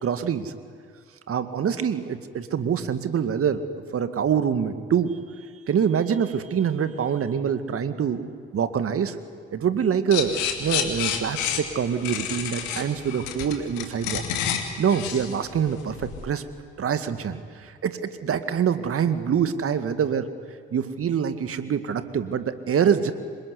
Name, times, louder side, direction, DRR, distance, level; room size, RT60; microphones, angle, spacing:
voice 1, 0.0-0.5 1.3-3.6 3.9-5.1 5.7-9.2 9.5-14.2 14.8-16.0 16.2-16.4 16.8-17.4 17.8-20.3 20.7-23.1, right 7 dB, 50° right, 10 dB, 2.1 m, -25 dB
sound 1, 10.1-16.2, left 8 dB, 75° left, 2.7 m, -29 dB
27.0 x 22.5 x 9.7 m, 2.2 s
hypercardioid pair, 45°, 29 cm